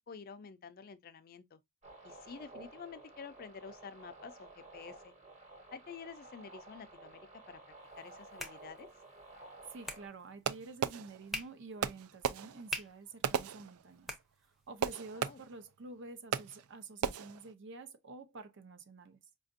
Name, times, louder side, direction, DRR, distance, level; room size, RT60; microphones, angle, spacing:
voice 1, 0.1-1.6 2.0-5.1 5.7-7.6 8.0-8.9 15.1-15.4, left 6 dB, 40° left, 0.4 m, -49 dB
sound 1, 1.8-10.1, right 2 dB, 30° right, 1.2 m, -53 dB
sound 2, 7.8-14.9, left 1 dB, ahead, 0.6 m, -48 dB
voice 2, 9.7-14.1 14.7-19.2, right 3 dB, 55° right, 0.7 m, -49 dB
Fireworks, 10.4-11.5 11.8-14.2 14.8-15.7 16.3-16.7 17.0-17.5, right 7 dB, 80° right, 0.4 m, -37 dB
5.0 x 2.5 x 2.5 m
head